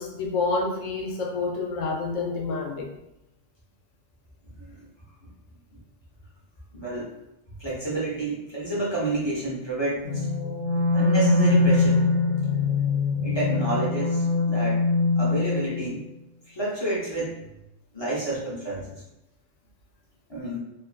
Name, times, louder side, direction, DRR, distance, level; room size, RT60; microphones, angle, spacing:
voice 1, 0.0-2.9, left 3 dB, 85° left, 1 dB, 0.9 m, -28 dB
voice 2, 6.7-7.1 7.6-10.3 10.9-12.0 13.2-14.8 15.2-16.0 16.5-17.3 17.9-19.0 20.3-20.6, right 2 dB, 30° left, -7 dB, 0.5 m, -29 dB
sound 1, 10.0-15.9, left 3 dB, 85° right, 1.0 m, -23 dB
2.5 x 2.5 x 2.4 m, 0.89 s
omnidirectional pair, 1.3 m